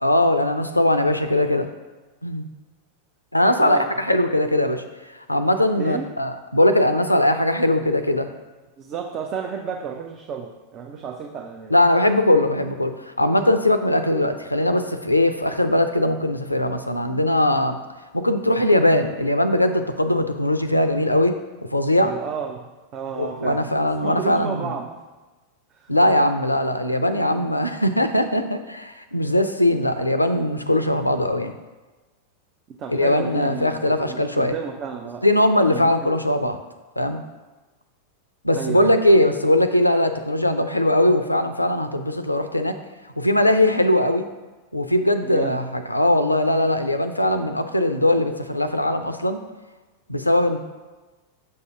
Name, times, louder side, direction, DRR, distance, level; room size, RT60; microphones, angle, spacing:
voice 1, 0.0-1.7 2.2-2.5 3.3-4.8 5.1-8.3 11.7-17.8 18.1-21.3 21.7-22.1 23.2-24.7 25.9-31.5 32.9-34.5 35.2-36.6 37.0-37.2 38.4-42.8 43.2-44.3 44.7-49.4 50.1-50.6, left 1 dB, 85° left, 9 dB, 0.3 m, -20 dB
voice 2, 3.6-4.0 5.8-6.1 8.8-11.7 22.0-22.6 22.9-23.7 24.0-25.0 25.7-25.9 30.5-30.6 32.8-35.2 35.7-36.1 36.4-36.5 38.5-39.2 45.2-45.6, right 6 dB, 35° right, 3 dB, 0.4 m, -32 dB
6.5 x 2.7 x 5.5 m, 1.2 s
figure-of-eight pair, 90°, 0 cm